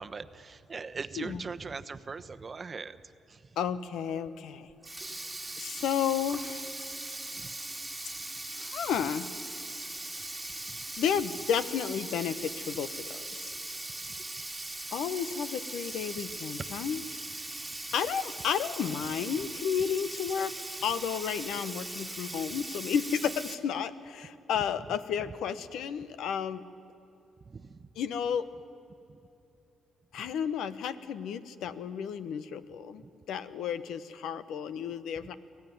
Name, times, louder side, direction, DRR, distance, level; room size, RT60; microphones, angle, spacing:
voice 1, 0.0-3.0 3.3-3.4 7.4-7.5 10.7-10.8 13.7-13.8 27.5-27.8 29.1-29.2, right 4 dB, 35° right, 11 dB, 0.9 m, -40 dB
voice 2, 3.6-4.7 5.6-6.7 8.6-9.3 11.0-13.5 14.9-17.0 17.9-20.5 20.8-26.6 28.0-28.4 30.1-35.4, left 8 dB, 80° left, 13 dB, 1.0 m, -32 dB
Sink (filling or washing), 4.7-23.5, right 2 dB, 10° right, 1.9 m, -40 dB
24.5 x 17.5 x 9.5 m, 2.7 s
cardioid pair, 90°, 0 cm